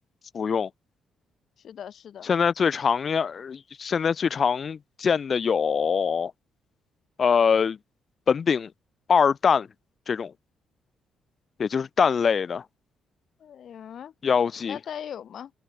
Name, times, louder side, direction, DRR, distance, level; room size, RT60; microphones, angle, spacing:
voice 1, 0.3-0.7 2.2-6.3 7.2-7.8 8.3-8.7 9.1-9.7 10.1-10.3 11.6-12.6 14.2-14.8, left 6 dB, 45° left, 1.1 m, -23 dB
voice 2, 1.6-2.3 13.4-14.1 14.7-15.5, left 9 dB, 60° left, 1.6 m, -39 dB
cardioid pair, 90°, 0 cm